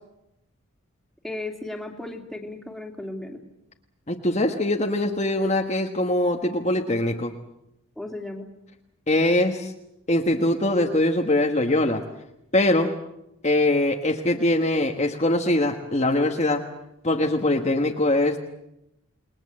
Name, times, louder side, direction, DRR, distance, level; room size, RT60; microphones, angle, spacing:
voice 1, 1.2-3.4 8.0-8.5, left 2 dB, ahead, 2 dB, 2.7 m, -35 dB
voice 2, 4.1-7.3 9.1-9.7 10.1-12.0 12.5-13.0 13.4-16.7 17.0-18.4, left 1 dB, 30° left, 2 dB, 1.4 m, -22 dB
29.0 x 21.0 x 7.6 m, 0.84 s
head